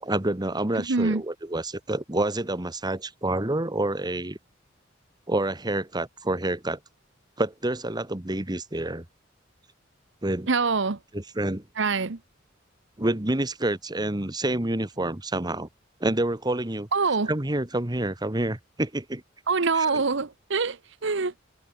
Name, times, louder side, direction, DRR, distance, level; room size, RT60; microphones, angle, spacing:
voice 1, 0.0-4.4 5.3-6.8 7.4-9.0 10.2-10.5 11.1-11.6 13.0-15.7 16.0-16.9 17.3-19.2 19.7-20.0, right 1 dB, 20° right, 1.5 m, -28 dB
voice 2, 0.8-1.2 10.5-11.0 11.8-12.2 16.9-17.3 19.5-21.4, right 4 dB, 70° right, 1.0 m, -25 dB
head